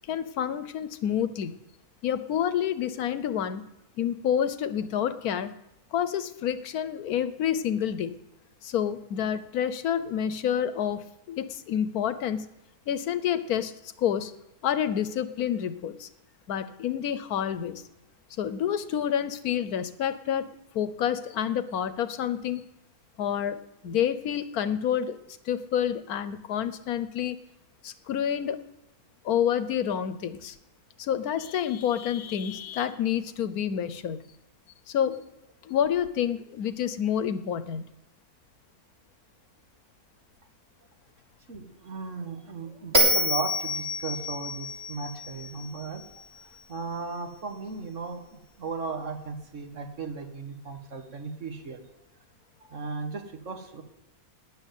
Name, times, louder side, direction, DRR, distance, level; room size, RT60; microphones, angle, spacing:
voice 1, 0.1-1.6 2.0-3.6 4.0-5.5 5.9-8.2 8.6-12.4 12.9-14.3 14.6-16.1 16.5-17.8 18.4-22.7 23.2-25.2 25.4-27.4 27.8-28.6 29.2-30.5 31.0-34.3 34.9-35.3 35.6-37.9, left 9 dB, 80° left, 13 dB, 1.3 m, -28 dB
voice 2, 41.5-51.8 52.6-53.8, right 4 dB, 55° right, 6 dB, 1.8 m, -36 dB
Bell, 42.9-46.2, equal, 40° right, 3.6 m, -27 dB
12.5 x 9.6 x 9.2 m, 0.89 s
omnidirectional pair, 1.6 m